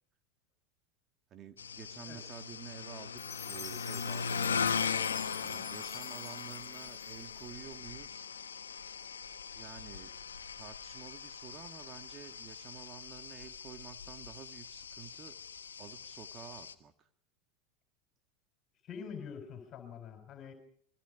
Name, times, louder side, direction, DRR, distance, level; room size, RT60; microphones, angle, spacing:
voice 1, 1.3-4.9 5.4-8.3 9.6-10.2 10.5-15.4 15.8-17.1, right 8 dB, 35° right, 8 dB, 1.9 m, -50 dB
sound 1, 1.6-16.7, left 6 dB, 85° left, 1.3 m, -39 dB
Chime, 3.2-7.5, left 6 dB, 20° left, 4.0 m, -48 dB
voice 2, 18.8-20.5, left 6 dB, 40° left, 6 dB, 4.2 m, -45 dB
27.0 x 22.0 x 4.9 m, 0.62 s
hypercardioid pair, 90°, 0 cm